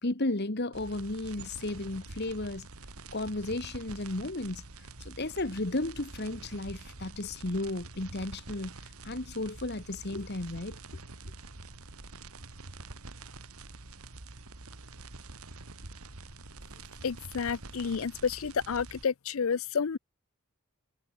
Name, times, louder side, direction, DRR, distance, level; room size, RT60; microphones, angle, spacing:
voice 1, 0.0-2.7 3.1-4.6 5.0-8.8 9.0-10.8, left 2 dB, 45° left, 1.7 m, -34 dB
sound 1, 0.7-19.0, right 3 dB, 80° right, 2.4 m, -46 dB
voice 2, 17.0-20.0, left 6 dB, 65° left, 0.5 m, -30 dB
head